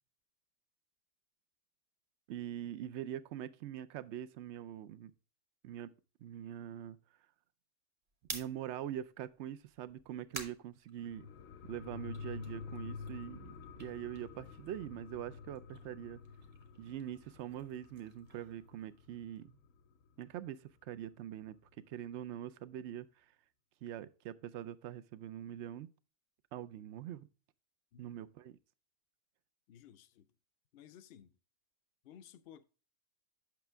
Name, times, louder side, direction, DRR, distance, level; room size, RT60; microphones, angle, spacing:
voice 1, 2.3-5.1 5.6-5.9 6.2-7.0 8.3-11.3 11.6-13.5 13.8-16.2 16.8-19.6 20.2-21.6 21.9-23.3 23.8-25.9 26.5-27.3 28.0-28.6, right 11 dB, 65° right, 0.8 m, -43 dB
sound 1, 8.1-11.6 12.0-15.0 15.2-19.4, right 3 dB, 40° right, 1.3 m, -51 dB
sound 2, 11.0-20.1 20.4-20.5, left 5 dB, 85° left, 1.1 m, -49 dB
voice 2, 27.9-28.2 29.7-30.3 30.7-31.3 32.0-32.6, left 9 dB, 60° left, 0.7 m, -56 dB
8.1 x 5.9 x 3.3 m
omnidirectional pair, 1.4 m